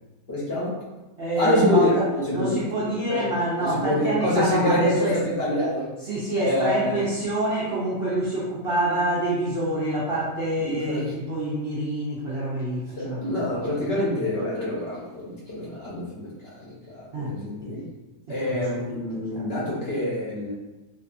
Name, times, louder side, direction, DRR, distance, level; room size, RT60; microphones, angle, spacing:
voice 1, 0.3-0.8 1.4-3.2 3.6-5.9 6.4-6.9 10.6-11.0 13.0-17.8 18.3-20.5, left 1 dB, 50° left, -7 dB, 0.8 m, -26 dB
voice 2, 1.2-5.2 6.0-14.3 17.1-17.8 18.3-19.5, right 1 dB, 75° right, -7 dB, 0.5 m, -27 dB
2.6 x 2.4 x 2.4 m, 1.1 s
omnidirectional pair, 1.6 m